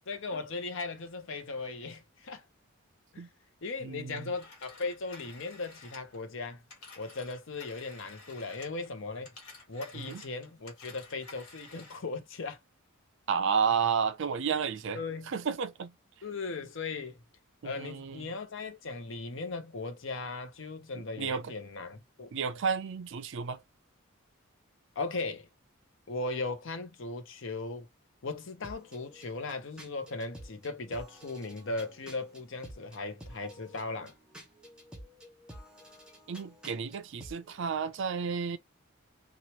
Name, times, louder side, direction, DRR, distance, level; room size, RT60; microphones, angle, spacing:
voice 1, 0.1-2.4 3.1-3.2 3.6-6.6 7.0-9.3 9.7-12.6 14.9-15.3 16.2-17.2 17.6-22.3 25.0-25.5 26.1-27.9 28.2-34.1, left 3 dB, 60° left, 0.7 m, -38 dB
voice 2, 3.8-4.3 9.9-10.2 13.3-15.0 15.3-15.9 17.6-18.3 20.9-21.5 22.3-23.6 36.3-38.6, right 6 dB, 60° right, 0.4 m, -32 dB
Telephone, 4.2-8.9 9.2-12.1, left 3 dB, 90° left, 1.7 m, -52 dB
sound 1, 28.6-37.6, equal, 5° right, 0.7 m, -51 dB
2.9 x 2.4 x 2.9 m
head